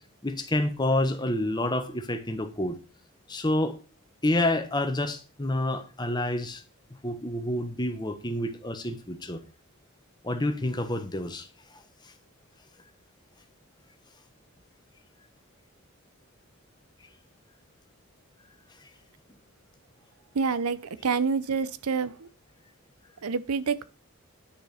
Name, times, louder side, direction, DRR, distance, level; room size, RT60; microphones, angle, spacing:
voice 1, 0.2-2.8 3.3-3.8 4.2-6.6 7.0-9.4 10.2-11.5 11.7-12.1 18.8-18.9, left 1 dB, 20° left, 1.2 m, -28 dB
voice 2, 20.3-22.3 23.2-23.8, right 5 dB, 90° right, 0.7 m, -27 dB
9.8 x 6.4 x 4.2 m
head